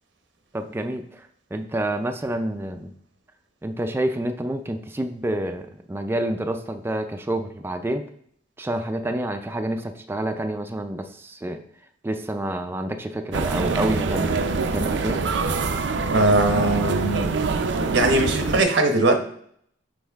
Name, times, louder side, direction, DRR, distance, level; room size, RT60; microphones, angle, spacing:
voice 1, 0.5-2.9 3.6-8.0 8.6-11.6 12.0-15.2, right 1 dB, 15° right, 6 dB, 0.3 m, -28 dB
sound 1, 13.3-18.6, right 4 dB, 70° right, 0.5 m, -25 dB
voice 2, 16.1-17.3 17.8-19.2, right 2 dB, 90° right, 5 dB, 0.9 m, -20 dB
6.3 x 4.6 x 3.5 m, 0.65 s
head